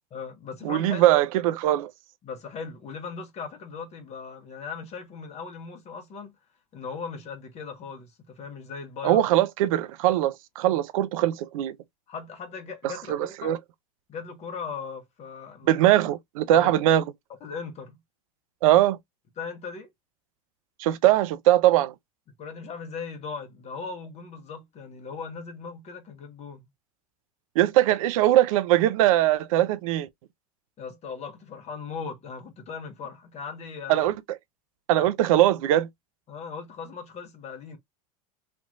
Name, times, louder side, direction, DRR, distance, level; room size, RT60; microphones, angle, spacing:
voice 1, 0.1-1.2 2.2-6.3 6.7-9.3 10.7-10.8 12.1-13.5 14.1-15.8 16.5-16.8 17.4-18.0 19.4-19.9 22.4-26.6 30.8-34.1 35.0-35.1 36.3-37.8, left 5 dB, 35° left, 1.4 m, -38 dB
voice 2, 0.6-1.9 9.0-11.8 12.8-13.6 15.7-17.0 18.6-19.0 20.8-21.9 27.6-30.1 33.9-34.1 34.9-35.9, right 13 dB, 65° right, 0.6 m, -21 dB
3.3 x 2.9 x 2.5 m
hypercardioid pair, 95°, 19 cm